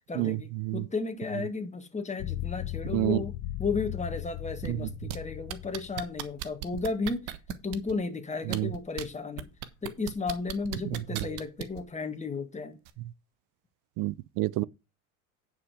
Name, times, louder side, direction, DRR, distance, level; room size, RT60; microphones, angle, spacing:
voice 1, 0.0-9.5 9.8-12.8, left 4 dB, 15° left, 2.0 m, -34 dB
sound 1, 2.2-6.2, left 15 dB, 65° left, 0.9 m, -37 dB
sound 2, 4.7-5.2 5.5-7.9 8.4-9.0 9.4-11.8 12.9-13.0, right 13 dB, 70° right, 1.4 m, -36 dB
voice 2, 14.0-14.6, right 19 dB, 50° right, 0.5 m, -28 dB
9.5 x 5.9 x 4.8 m
supercardioid pair, 90°, 44 cm